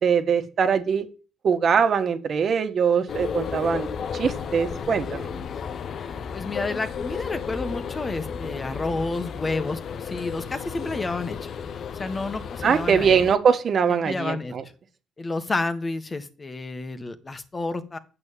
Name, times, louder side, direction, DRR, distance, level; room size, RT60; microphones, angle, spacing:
voice 1, 0.0-1.0 1.4-5.3 12.6-14.6, right 6 dB, 55° right, 8 dB, 1.7 m, -22 dB
sound 1, 3.1-13.4, left 6 dB, 60° left, 0.9 m, -33 dB
voice 2, 6.0-11.5 12.0-13.2 13.9-14.6 15.2-18.0, left 3 dB, 30° left, 10 dB, 1.6 m, -30 dB
8.5 x 6.8 x 8.6 m, 0.37 s
cardioid pair, 85°, 0 cm